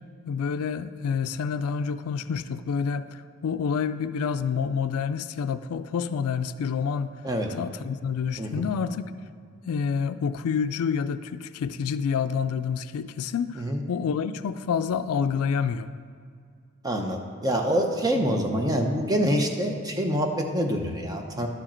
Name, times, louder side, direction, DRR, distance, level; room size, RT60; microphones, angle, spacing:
voice 1, 0.2-7.1 7.6-9.0 9.6-15.9, left 6 dB, 80° left, 12 dB, 0.3 m, -28 dB
voice 2, 16.8-21.5, equal, 15° right, 3 dB, 0.6 m, -26 dB
11.5 x 4.9 x 4.4 m, 2.2 s
head